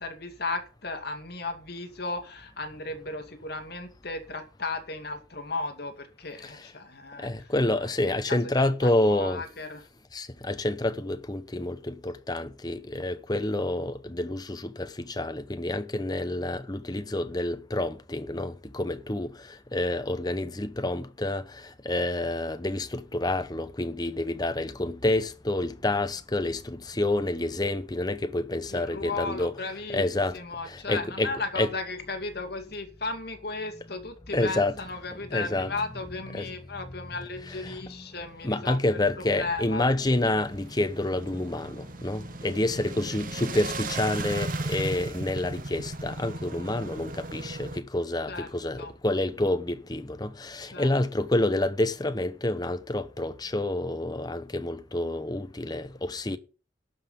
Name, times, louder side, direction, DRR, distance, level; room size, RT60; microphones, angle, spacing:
voice 1, 0.0-7.5 8.1-9.9 28.7-30.1 30.3-39.8 48.3-48.5 48.8-48.9 50.7-50.9, left 3 dB, 60° left, 2.4 m, -35 dB
voice 2, 7.2-9.4 10.1-29.5 29.9-30.4 30.7-31.7 34.3-34.8 35.1-35.7 36.3-36.5 37.4-38.1 38.4-56.4, left 1 dB, 20° left, 0.9 m, -28 dB
sound 1, 40.0-47.8, right 2 dB, 50° right, 1.2 m, -36 dB
12.0 x 5.7 x 8.6 m
head